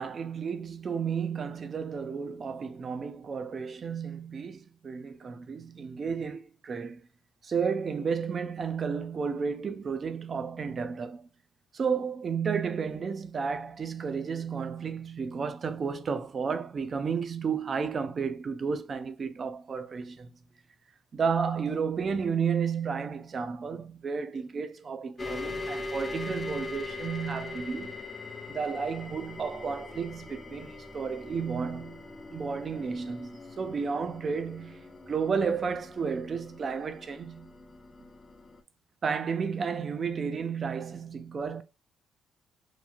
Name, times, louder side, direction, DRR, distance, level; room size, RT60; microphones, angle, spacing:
voice 1, 0.0-7.1 7.4-11.3 11.7-20.3 21.1-28.0 28.5-32.0 32.3-37.5 39.0-41.6, right 6 dB, 45° right, 0.4 m, -32 dB
sound 1, 25.2-38.6, left 3 dB, 25° left, 0.4 m, -41 dB
3.0 x 2.4 x 2.3 m
cardioid pair, 90°, 0 cm